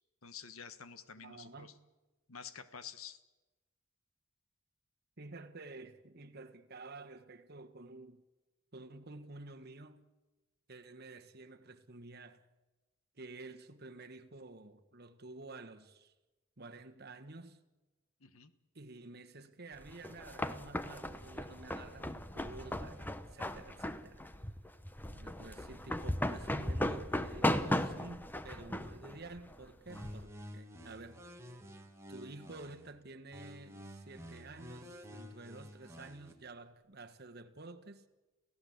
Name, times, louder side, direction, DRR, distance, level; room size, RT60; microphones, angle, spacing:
voice 1, 0.2-1.7 2.3-3.2 18.2-18.5, left 7 dB, 90° left, 1.4 m, -49 dB
voice 2, 1.2-1.8 5.2-8.2 8.7-10.0 10.7-12.4 13.2-16.1 16.6-17.6 18.7-24.2 25.1-31.2 32.1-38.0, right 2 dB, 50° right, 1.5 m, -51 dB
sound 1, 19.8-30.2, left 1 dB, 10° left, 0.8 m, -37 dB
sound 2, 29.9-32.9 33.3-36.3, equal, 15° right, 2.1 m, -50 dB
29.0 x 16.0 x 8.1 m
head